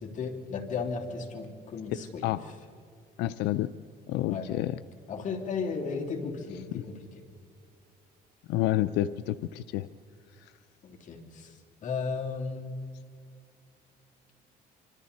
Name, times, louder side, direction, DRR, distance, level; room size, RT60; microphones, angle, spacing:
voice 1, 0.0-2.3 4.3-4.5 5.1-7.3 10.8-11.5 11.8-12.7, left 5 dB, 50° left, 1 dB, 3.3 m, -35 dB
voice 2, 3.2-3.7 4.1-4.7 8.5-9.9, left 14 dB, 90° left, 13 dB, 0.5 m, -28 dB
26.5 x 24.5 x 4.2 m, 2.3 s
cardioid pair, 110°, 17 cm